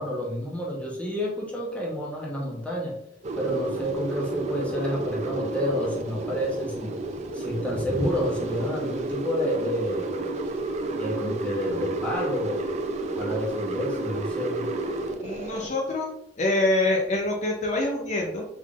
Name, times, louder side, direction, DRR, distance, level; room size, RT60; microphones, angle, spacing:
voice 1, 0.0-3.0 3.4-6.9 7.3-10.1 11.0-12.7 13.2-14.7, equal, 10° left, -4 dB, 0.8 m, -29 dB
sound 1, 3.2-15.7, right 2 dB, 40° right, 0.4 m, -31 dB
voice 2, 15.2-18.4, left 2 dB, 40° left, 0 dB, 0.5 m, -26 dB
3.6 x 3.5 x 2.3 m, 0.76 s
head